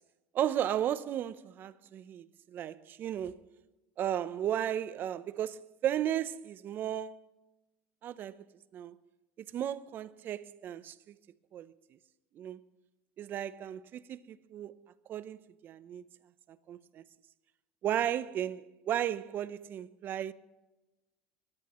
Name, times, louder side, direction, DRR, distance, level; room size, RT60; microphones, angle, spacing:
voice 1, 0.3-3.3 4.0-7.2 8.0-8.4 8.7-8.9 9.5-10.9 11.5-11.7 12.4-12.6 13.2-14.7 15.1-15.4 15.6-16.0 16.7-17.0 17.8-20.3, right 10 dB, 45° right, 0.8 m, -34 dB
23.0 x 18.0 x 3.1 m
supercardioid pair, 100°, 5 cm